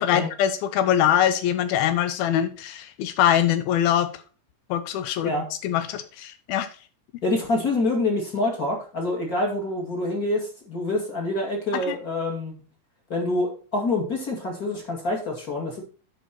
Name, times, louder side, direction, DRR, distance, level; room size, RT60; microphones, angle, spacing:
voice 1, 0.0-4.1 4.7-5.3 5.6-6.7 11.7-12.0, left 10 dB, 80° left, 11 dB, 2.5 m, -23 dB
voice 2, 7.2-12.5 13.1-15.8, left 2 dB, 25° left, 0 dB, 2.4 m, -26 dB
11.0 x 5.2 x 4.3 m, 0.37 s
omnidirectional pair, 4.4 m